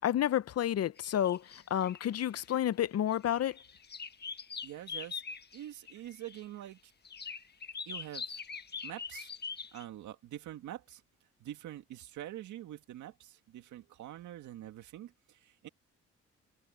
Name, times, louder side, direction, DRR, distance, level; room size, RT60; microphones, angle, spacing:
voice 1, 0.0-3.6, left 11 dB, 60° left, 0.7 m, -30 dB
sound 1, 1.0-2.6 3.1-6.4 7.0-9.8, left 5 dB, 35° left, 1.5 m, -43 dB
voice 2, 4.6-5.2 5.5-6.9 7.9-8.4 8.8-9.3 9.7-11.0 11.4-15.7, right 13 dB, 85° right, 2.1 m, -45 dB
cardioid pair, 75°, 29 cm